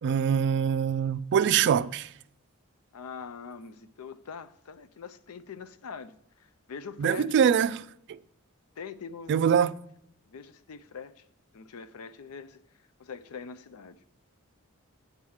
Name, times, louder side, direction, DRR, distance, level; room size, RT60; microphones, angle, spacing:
voice 1, 0.0-2.0 7.0-8.2 9.3-9.7, right 8 dB, 55° right, 0.3 m, -24 dB
voice 2, 1.3-1.8 2.9-7.4 8.8-9.5 10.3-11.2 11.5-12.6 13.0-14.0, left 5 dB, 90° left, 0.5 m, -43 dB
8.0 x 4.7 x 7.2 m
head